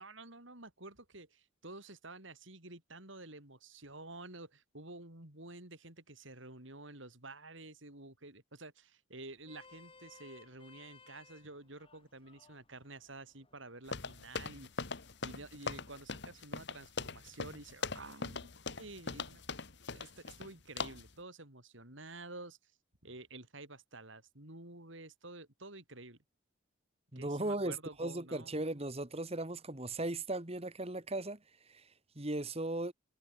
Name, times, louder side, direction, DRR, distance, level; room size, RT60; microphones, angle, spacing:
voice 1, 0.0-14.7 15.2-19.4 19.9-22.6 23.0-26.2 27.2-28.6, right 2 dB, 65° right, 5.4 m, -50 dB
Vehicle horn car horn honking, 9.2-15.6, left 4 dB, 25° left, 5.3 m, -62 dB
sound 1, 13.9-20.5 20.8-21.1, left 4 dB, 55° left, 1.8 m, -41 dB
voice 2, 27.1-31.4 31.7-31.9 32.2-32.9, right 2 dB, 30° right, 1.9 m, -37 dB
head